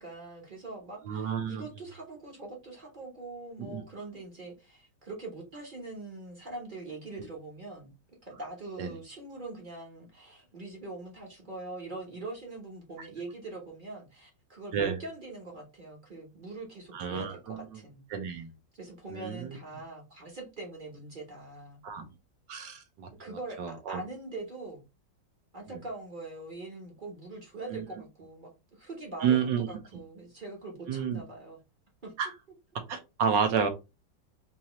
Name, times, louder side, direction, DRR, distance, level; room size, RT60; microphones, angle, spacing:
voice 1, 0.0-7.9 8.2-18.0 18.7-21.8 23.2-24.8 25.5-31.6 32.0-32.1, right 2 dB, 35° right, 0 dB, 0.8 m, -43 dB
voice 2, 1.0-1.6 3.6-3.8 7.2-7.3 8.8-8.9 13.0-13.1 14.7-15.0 16.9-17.7 18.1-18.5 19.1-19.6 21.8-22.1 22.5-23.1 23.6-24.0 25.7-25.8 27.7-27.8 29.2-29.7 30.9-31.2 32.2-32.3 32.9-33.7, right 7 dB, 75° right, 6 dB, 1.4 m, -30 dB
4.2 x 2.9 x 3.0 m, 0.27 s
omnidirectional pair, 2.1 m